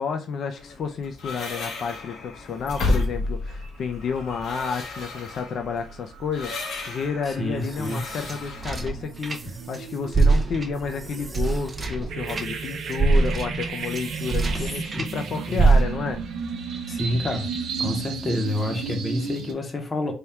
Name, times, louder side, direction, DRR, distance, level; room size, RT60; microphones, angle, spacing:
voice 1, 0.0-16.2, left 6 dB, 50° left, 0.4 m, -31 dB
sound 1, 0.6-8.9, left 2 dB, 80° left, 1.0 m, -32 dB
sound 2, 3.5-3.7 4.1-19.5, right 5 dB, 85° right, 0.7 m, -35 dB
voice 2, 7.3-8.0 14.5-15.0 15.5-15.6 16.9-17.5 17.8-20.1, left 1 dB, 25° left, 0.8 m, -28 dB
sound 3, 7.4-9.8 10.1-15.1 15.6-16.3, right 3 dB, 20° right, 0.4 m, -24 dB
3.5 x 2.3 x 4.1 m
wide cardioid pair, 175°, 0 cm